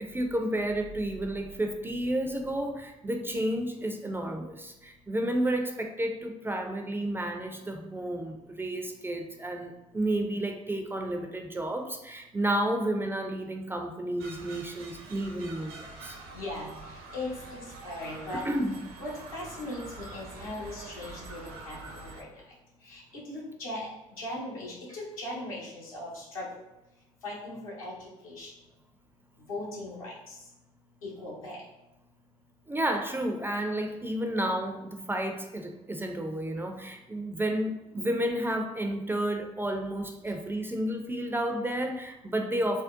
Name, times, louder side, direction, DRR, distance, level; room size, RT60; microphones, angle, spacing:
voice 1, 0.0-16.2 18.4-18.8 32.7-42.8, right 1 dB, 10° right, 3 dB, 0.4 m, -31 dB
sound 1, 14.2-22.2, right 3 dB, 60° right, 0.5 m, -45 dB
voice 2, 16.3-18.4 19.0-22.3 22.8-23.9 24.2-26.5 27.2-27.9 28.2-28.5 29.5-30.4 31.0-31.6, left 1 dB, 80° left, -6 dB, 0.9 m, -39 dB
3.6 x 2.1 x 2.5 m, 0.95 s
figure-of-eight pair, 50°, 18 cm